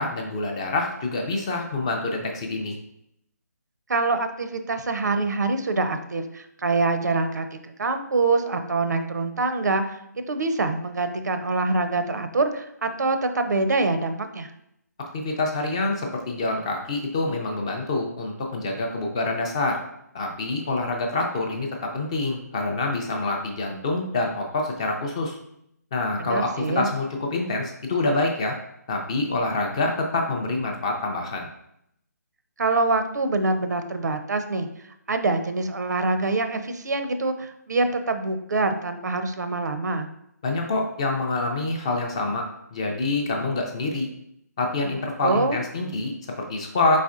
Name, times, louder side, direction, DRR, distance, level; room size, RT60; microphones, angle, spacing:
voice 1, 0.0-2.8 15.1-19.8 20.1-25.4 25.9-28.5 28.9-31.5 40.4-42.4 42.7-44.1 44.6-47.0, left 2 dB, 20° left, 2 dB, 0.4 m, -26 dB
voice 2, 3.9-10.0 10.3-14.5 26.2-26.9 32.6-34.7 35.1-40.1 45.2-45.6, right 3 dB, 70° right, 8 dB, 0.5 m, -25 dB
4.2 x 4.1 x 2.4 m, 0.76 s
hypercardioid pair, 165°, 10 cm